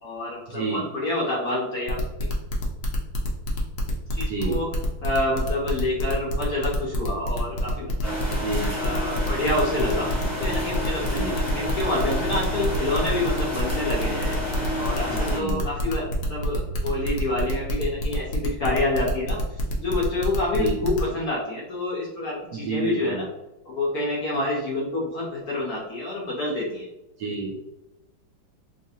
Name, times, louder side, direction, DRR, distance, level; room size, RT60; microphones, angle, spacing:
voice 1, 0.0-2.0 4.1-4.7 5.0-8.4 8.8-10.1 10.4-14.3 14.7-23.2 23.7-26.9, left 2 dB, 65° left, -4 dB, 1.0 m, -28 dB
voice 2, 0.5-0.8 4.3-4.6 8.4-8.7 11.0-11.4 15.1-15.6 20.6-20.8 22.5-23.2 27.2-27.6, right 4 dB, 75° right, -1 dB, 1.0 m, -29 dB
sound 1, 1.9-21.1, left 2 dB, 90° left, 0.7 m, -29 dB
sound 2, 8.0-15.4, left 1 dB, 25° right, 1.0 m, -30 dB
sound 3, 11.5-17.9, right 2 dB, 50° right, 1.2 m, -40 dB
4.0 x 2.5 x 2.7 m, 0.96 s
omnidirectional pair, 2.3 m